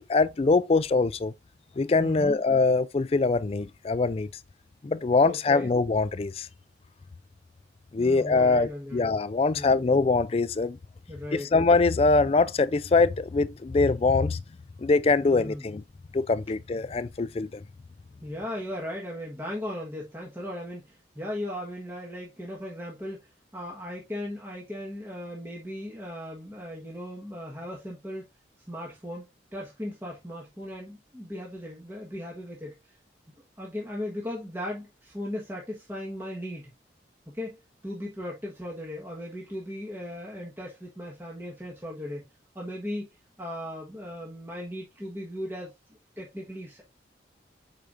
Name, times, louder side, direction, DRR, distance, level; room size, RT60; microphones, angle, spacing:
voice 1, 0.0-1.3 1.8-4.3 4.8-6.5 7.9-10.8 11.3-14.4 14.8-15.8 16.1-17.6, left 3 dB, 30° left, 0.3 m, -23 dB
voice 2, 2.0-2.4 5.2-5.7 8.0-9.0 9.5-9.8 11.1-11.5 15.2-15.7 18.2-28.2 28.7-29.3 29.5-32.7 33.6-36.7 37.3-42.3 42.5-43.1 43.4-45.7 46.2-46.8, left 1 dB, 10° right, 1.3 m, -37 dB
8.1 x 4.9 x 2.5 m
head